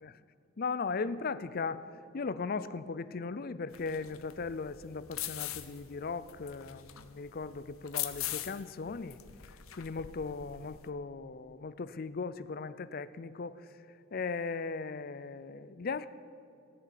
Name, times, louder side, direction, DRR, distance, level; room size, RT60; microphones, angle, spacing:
voice 1, 0.6-1.9 2.1-9.2 9.4-13.6 14.1-16.1, left 4 dB, 45° left, 15 dB, 0.5 m, -38 dB
sound 1, 3.7-10.9, left 13 dB, 85° left, 0.8 m, -42 dB
18.0 x 6.9 x 9.4 m, 2.7 s
head